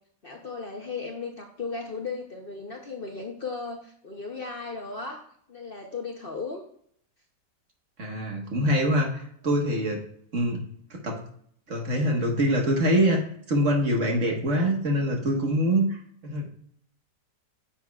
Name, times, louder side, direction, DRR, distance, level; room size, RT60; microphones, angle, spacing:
voice 1, 0.2-5.2 5.5-6.6, left 4 dB, 50° left, 2 dB, 0.7 m, -36 dB
voice 2, 8.0-10.0 10.3-10.6 10.9-11.2 11.7-13.2 13.5-16.5, equal, 45° right, 2 dB, 1.6 m, -24 dB
9.0 x 7.4 x 2.3 m, 0.63 s
omnidirectional pair, 1.9 m